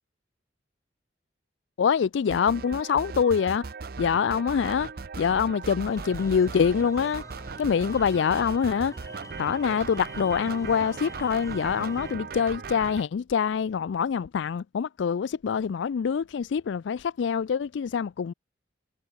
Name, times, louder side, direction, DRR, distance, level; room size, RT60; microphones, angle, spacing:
voice 1, 1.8-3.7 4.0-4.9 5.2-7.2 7.6-8.9 9.4-18.3, left 6 dB, 75° left, 0.4 m, -25 dB
sound 1, 2.3-13.0, right 5 dB, 50° right, 0.5 m, -38 dB
sound 2, 5.8-12.1, left 2 dB, 15° left, 2.0 m, -47 dB
head